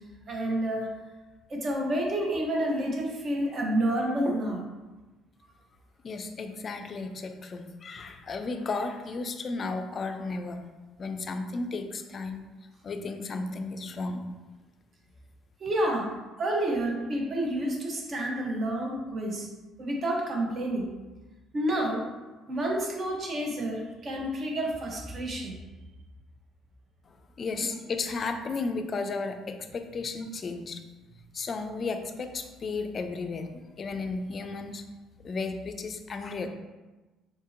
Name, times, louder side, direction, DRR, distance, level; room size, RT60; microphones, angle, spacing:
voice 1, 0.3-0.9 1.5-4.6 15.6-19.5 19.8-20.9 21.5-22.1 22.5-25.6 27.6-27.7, right 1 dB, 40° right, 0 dB, 0.7 m, -29 dB
voice 2, 6.0-10.6 11.0-12.4 12.8-14.3 27.4-30.8 31.3-34.8 35.2-36.5, left 3 dB, 40° left, 7 dB, 0.3 m, -34 dB
3.9 x 2.7 x 2.5 m, 1.2 s
cardioid pair, 105°, 0 cm